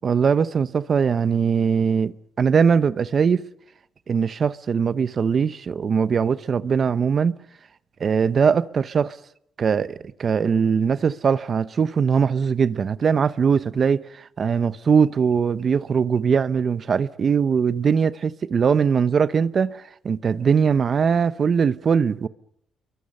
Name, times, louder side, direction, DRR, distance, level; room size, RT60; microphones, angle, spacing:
voice 1, 0.0-3.4 4.1-7.3 8.0-9.2 9.6-22.3, right 6 dB, 45° right, 0.8 m, -21 dB
29.0 x 23.0 x 5.5 m
cardioid pair, 90°, 0 cm